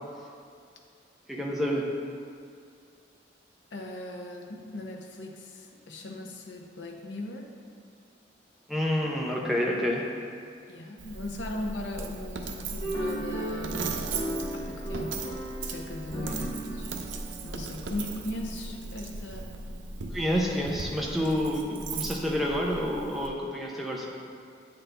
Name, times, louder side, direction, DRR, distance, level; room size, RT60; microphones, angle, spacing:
voice 1, 1.3-1.9 8.7-10.0 16.3-16.5 20.1-24.1, equal, ahead, -3 dB, 0.6 m, -28 dB
voice 2, 3.7-7.5 10.7-14.1 14.5-15.2 15.6-16.5 16.7-16.9 17.4-19.6, left 1 dB, 85° left, 1 dB, 0.7 m, -38 dB
Coin (dropping), 11.0-23.3, right 3 dB, 85° right, 0.5 m, -38 dB
sound 1, 12.8-18.4, right 1 dB, 25° left, 0.9 m, -36 dB
8.6 x 4.1 x 3.3 m, 2.3 s
head